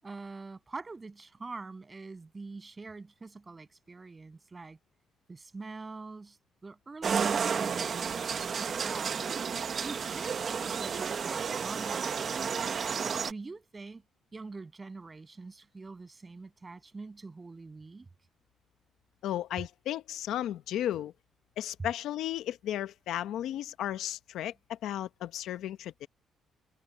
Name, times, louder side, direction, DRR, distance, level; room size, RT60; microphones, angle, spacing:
voice 1, 0.0-4.8 5.3-6.4 6.6-8.3 8.6-9.2 9.8-12.4 13.3-14.0 14.3-18.1, right 3 dB, 25° right, 7.6 m, -44 dB
sound 1, 7.0-13.3, right 6 dB, 50° right, 1.2 m, -32 dB
voice 2, 19.2-21.1 21.6-26.1, left 12 dB, 80° left, 0.9 m, -34 dB
cardioid pair, 90°, 0 cm